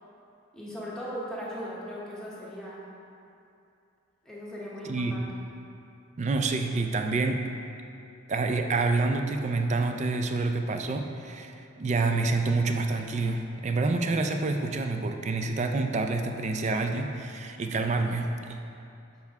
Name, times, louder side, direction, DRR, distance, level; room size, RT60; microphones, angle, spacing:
voice 1, 0.5-2.9 4.2-5.3, equal, 5° left, -7 dB, 1.0 m, -38 dB
voice 2, 4.8-5.2 6.2-7.4 8.3-18.6, right 3 dB, 35° right, 5 dB, 0.3 m, -28 dB
6.8 x 4.4 x 3.5 m, 2.7 s
head